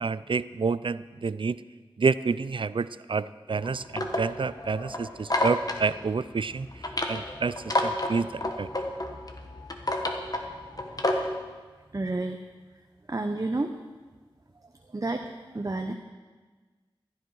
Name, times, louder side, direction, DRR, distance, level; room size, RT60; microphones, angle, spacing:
voice 1, 0.0-1.6 2.0-6.7 7.1-8.7, right 4 dB, 65° right, 16 dB, 0.4 m, -29 dB
sound 1, 3.5-11.4, left 1 dB, 45° left, 1.4 m, -31 dB
voice 2, 11.9-12.4 13.1-13.7 14.9-15.9, right 2 dB, 40° right, 5 dB, 0.8 m, -30 dB
15.5 x 11.5 x 4.8 m, 1.4 s
wide cardioid pair, 60°, 9 cm